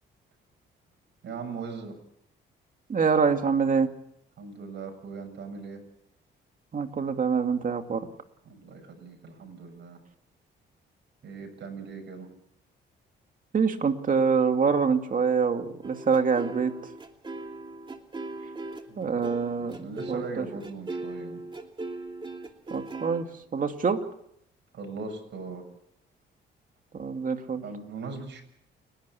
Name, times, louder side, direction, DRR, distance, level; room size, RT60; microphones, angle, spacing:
voice 1, 1.2-2.0 4.4-5.8 8.4-10.0 11.2-12.3 18.9-19.2 19.6-21.4 24.7-25.7 27.6-28.4, right 4 dB, 60° right, 4 dB, 7.2 m, -39 dB
voice 2, 2.9-3.9 6.7-8.1 13.5-16.7 19.0-20.4 22.7-23.3 23.5-24.0 26.9-27.6, right 5 dB, 40° right, 6 dB, 2.4 m, -25 dB
sound 1, 15.8-23.2, right 2 dB, 25° right, 2.8 m, -39 dB
29.5 x 12.0 x 8.4 m, 0.74 s
cardioid pair, 90°, 20 cm